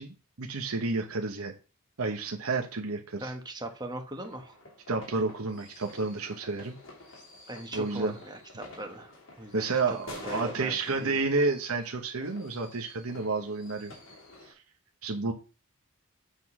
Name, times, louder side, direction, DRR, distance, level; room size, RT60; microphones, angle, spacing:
voice 1, 0.0-1.5 2.0-3.3 4.9-6.8 7.7-8.1 9.5-13.9 14.5-14.6 15.0-15.3, right 3 dB, 80° right, 3 dB, 1.0 m, -30 dB
voice 2, 3.2-4.6 7.5-10.0 10.2-11.2, right 1 dB, 20° right, 4 dB, 1.3 m, -40 dB
sound 1, 4.2-14.5, left 2 dB, 60° left, 2.8 m, -49 dB
8.4 x 3.8 x 6.1 m, 0.34 s
head